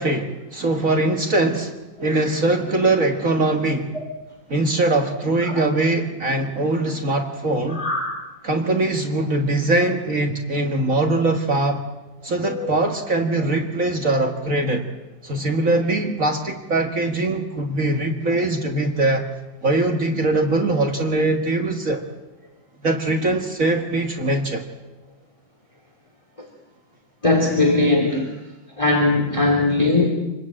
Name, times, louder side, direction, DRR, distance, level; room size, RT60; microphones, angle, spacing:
voice 1, 0.0-1.7 2.0-4.0 4.5-7.8 8.4-11.8 12.2-14.8 15.2-19.2 19.6-22.0 22.8-24.7, right 2 dB, 45° right, 4 dB, 2.1 m, -22 dB
voice 2, 7.7-8.1 12.4-12.7 26.4-26.5 27.2-28.3 28.8-30.1, left 2 dB, 15° left, 2 dB, 3.2 m, -20 dB
28.0 x 21.0 x 8.8 m, 1.1 s
omnidirectional pair, 2.0 m